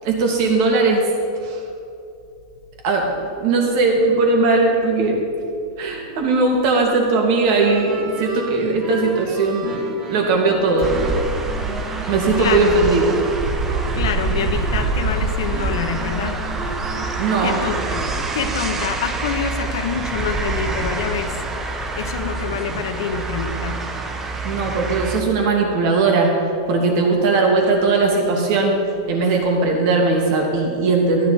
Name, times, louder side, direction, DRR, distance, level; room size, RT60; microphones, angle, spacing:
voice 1, 0.0-1.1 1.4-1.6 2.8-3.1 3.4-5.2 5.8-9.7 10.1-10.9 12.1-13.3 17.2-17.6 24.4-26.4 26.7-28.7 29.1-31.3, right 3 dB, 55° right, 1 dB, 2.4 m, -18 dB
sound 1, 7.4-18.2, right 2 dB, 30° right, 1.8 m, -33 dB
sound 2, 10.8-25.2, right 3 dB, 15° right, 0.9 m, -26 dB
voice 2, 12.0-12.7 13.9-16.4 17.4-18.0 18.3-21.4 21.9-23.8, left 7 dB, 80° left, 7 dB, 1.1 m, -26 dB
13.5 x 10.0 x 4.3 m, 2.6 s
supercardioid pair, 145°, 2 cm